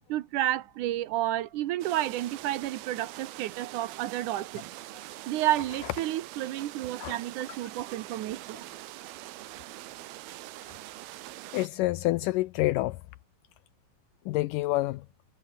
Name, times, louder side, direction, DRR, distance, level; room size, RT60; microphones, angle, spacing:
voice 1, 0.1-4.7 5.2-8.7, right 14 dB, 70° right, 2.2 m, -31 dB
sound 1, 1.8-11.7, right 16 dB, 85° right, 2.9 m, -44 dB
voice 2, 11.5-13.0 14.3-15.1, left 18 dB, 85° left, 1.9 m, -27 dB
omnidirectional pair, 4.3 m